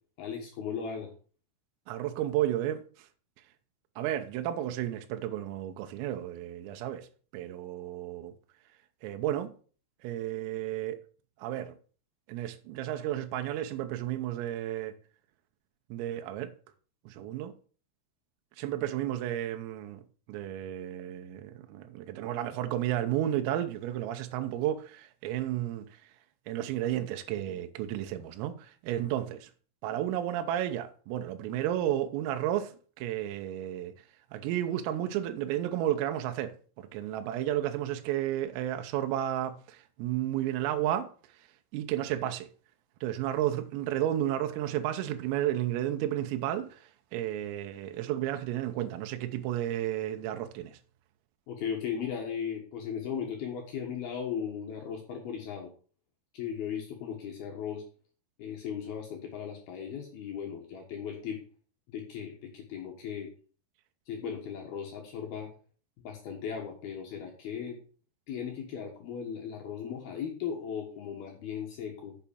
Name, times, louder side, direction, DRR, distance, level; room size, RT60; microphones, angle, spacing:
voice 1, 0.2-1.1 51.5-55.7 56.3-57.8 58.4-61.4 61.9-63.3 64.1-65.5 66.0-67.8 68.3-72.2, left 7 dB, 65° left, 2.8 m, -37 dB
voice 2, 1.9-3.1 4.0-7.1 7.3-8.4 9.0-9.5 10.0-11.0 11.4-11.8 12.3-15.0 15.9-16.5 17.1-17.5 18.6-20.0 20.3-26.0 26.5-29.5 29.8-33.9 34.3-41.1 41.7-42.5 43.0-50.8, right 12 dB, 85° right, 3.6 m, -32 dB
8.1 x 7.1 x 6.9 m
omnidirectional pair, 5.9 m